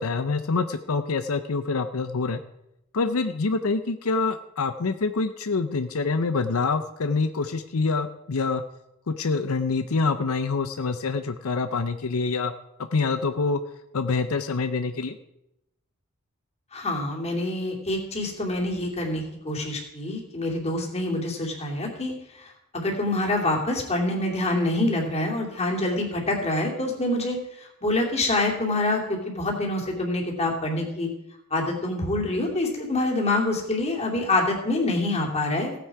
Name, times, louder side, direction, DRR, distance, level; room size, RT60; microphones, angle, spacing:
voice 1, 0.0-2.4 2.9-8.6 9.1-12.5 12.8-13.6 13.9-15.2, left 4 dB, 85° left, 9 dB, 0.7 m, -26 dB
voice 2, 16.7-22.1 22.4-27.4 27.8-31.1 31.5-35.7, left 2 dB, 30° left, 0 dB, 2.7 m, -26 dB
16.0 x 9.3 x 4.8 m, 0.85 s
head